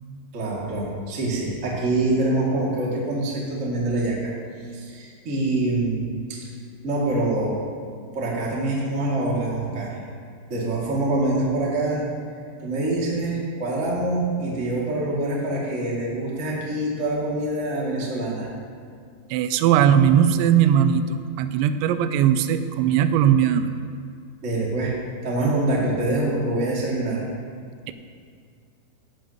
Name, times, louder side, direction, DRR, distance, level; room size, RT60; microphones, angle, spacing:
voice 1, 0.3-4.3 4.7-6.5 6.8-7.6 8.1-10.0 10.5-12.1 12.6-18.5 24.4-24.9 25.2-27.2, right 2 dB, 30° right, -5 dB, 1.4 m, -25 dB
voice 2, 19.3-23.7 27.9-28.0, right 9 dB, 85° right, 10 dB, 2.9 m, -19 dB
17.0 x 11.5 x 3.0 m, 2.2 s
omnidirectional pair, 5.2 m